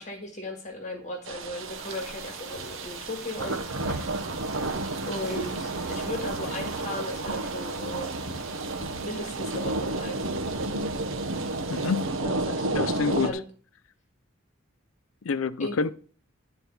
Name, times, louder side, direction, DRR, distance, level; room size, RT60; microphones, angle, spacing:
voice 1, 0.0-3.6 5.1-8.1 9.0-10.3 12.2-13.4 15.6-15.8, left 1 dB, 35° left, 1.8 m, -36 dB
sound 1, 1.3-13.3, right 2 dB, 70° right, 1.0 m, -31 dB
sound 2, 1.6-12.3, equal, ahead, 3.9 m, -44 dB
voice 2, 11.7-12.1 12.7-13.3 15.2-15.9, left 4 dB, 80° left, 0.5 m, -27 dB
11.5 x 4.5 x 7.0 m
head